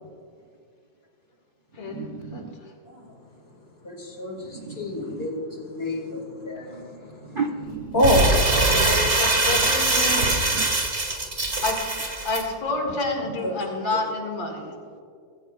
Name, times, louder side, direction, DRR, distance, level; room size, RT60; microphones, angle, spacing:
voice 1, 1.8-2.6 4.4-5.3 7.3-8.0 10.1-10.7 13.2-13.4, right 5 dB, 85° right, 3 dB, 0.4 m, -34 dB
voice 2, 3.8-7.4 7.9-8.3 13.4-13.5, left 1 dB, 30° left, 2 dB, 2.4 m, -27 dB
Crumpling crinkling, 8.0-12.4, right 2 dB, 35° right, 2.2 m, -22 dB
voice 3, 8.5-10.2 11.6-12.0 12.2-14.7, left 3 dB, 75° left, 1 dB, 2.9 m, -29 dB
22.0 x 15.5 x 2.4 m, 2.2 s
omnidirectional pair, 2.1 m